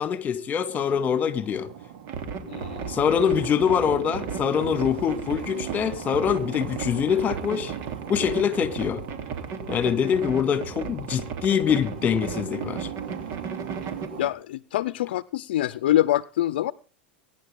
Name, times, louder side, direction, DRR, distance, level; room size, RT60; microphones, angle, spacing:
voice 1, 0.0-1.7 2.9-7.7 8.1-9.0 9.7-12.9, left 8 dB, 30° left, 2.3 m, -24 dB
sound 1, 0.7-14.3, right 9 dB, 65° right, 2.7 m, -39 dB
sound 2, 2.1-14.1, right 6 dB, 50° right, 3.4 m, -35 dB
voice 2, 2.5-2.9 14.2-16.7, left 13 dB, 75° left, 0.6 m, -25 dB
23.0 x 10.5 x 3.7 m
hypercardioid pair, 105°, 5 cm